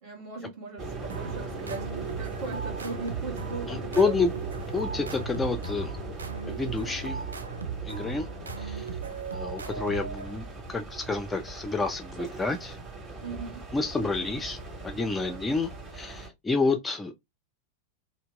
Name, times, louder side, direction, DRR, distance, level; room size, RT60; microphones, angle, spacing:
voice 1, 0.0-1.9 2.2-4.2 13.2-13.7 15.1-15.5, right 3 dB, 45° right, 1.5 m, -39 dB
sound 1, 0.8-16.3, right 2 dB, 25° right, 1.6 m, -39 dB
sound 2, 1.1-10.6, right 6 dB, 75° right, 0.3 m, -37 dB
voice 2, 3.6-4.3 4.7-5.9 6.5-7.3 7.8-8.3 8.6-8.9 9.3-12.8 13.1-13.2 13.7-14.6 14.8-17.1, left 3 dB, 10° left, 0.4 m, -29 dB
2.8 x 2.1 x 3.2 m
figure-of-eight pair, 90°, 0 cm